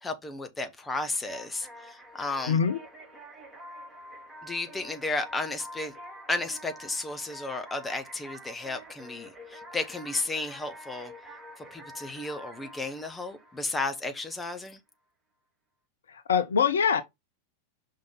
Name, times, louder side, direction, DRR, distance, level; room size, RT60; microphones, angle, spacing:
voice 1, 0.0-2.6 4.4-5.9 6.3-11.1 11.6-14.8, left 2 dB, 10° left, 1.1 m, -33 dB
sound 1, 0.9-14.3, equal, 10° right, 2.3 m, -47 dB
voice 2, 2.5-2.8 16.1-17.0, left 7 dB, 65° left, 0.7 m, -24 dB
5.5 x 3.9 x 5.0 m
figure-of-eight pair, 90°, 0 cm